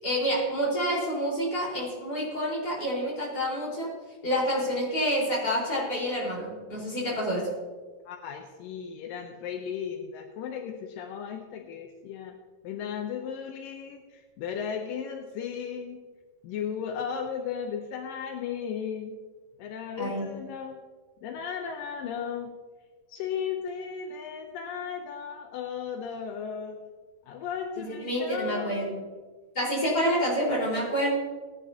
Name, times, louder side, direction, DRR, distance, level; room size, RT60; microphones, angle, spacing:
voice 1, 0.0-3.9 4.2-7.5 20.0-20.3 27.8-29.1 29.6-31.1, equal, 25° left, -5 dB, 5.0 m, -28 dB
voice 2, 8.1-12.4 12.6-16.0 16.4-19.2 19.6-20.8 21.2-22.5 23.1-26.8 27.3-28.9, left 7 dB, 80° left, 3 dB, 2.5 m, -35 dB
19.5 x 11.0 x 2.9 m, 1.4 s
omnidirectional pair, 4.0 m